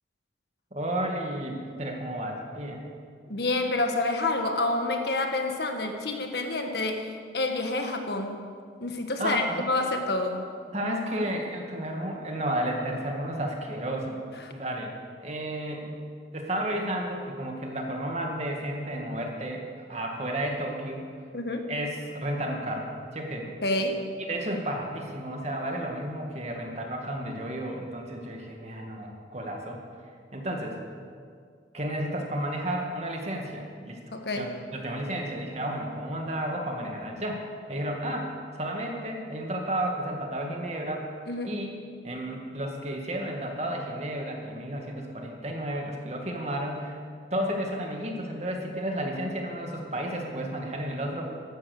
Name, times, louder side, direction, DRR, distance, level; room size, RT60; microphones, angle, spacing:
voice 1, 0.7-2.9 9.2-9.7 10.7-14.2 14.5-14.9 15.2-16.1 16.3-21.1 21.7-23.5 24.3-29.8 30.3-30.8 31.7-41.1 41.5-41.7 42.0-47.0 47.3-51.2, right 1 dB, 35° right, 1 dB, 2.1 m, -32 dB
voice 2, 3.3-8.4 8.8-10.4 21.3-21.6 23.6-24.0 34.1-34.5 41.3-41.5, left 2 dB, 60° left, 4 dB, 1.6 m, -28 dB
14.5 x 12.5 x 6.6 m, 2.1 s
head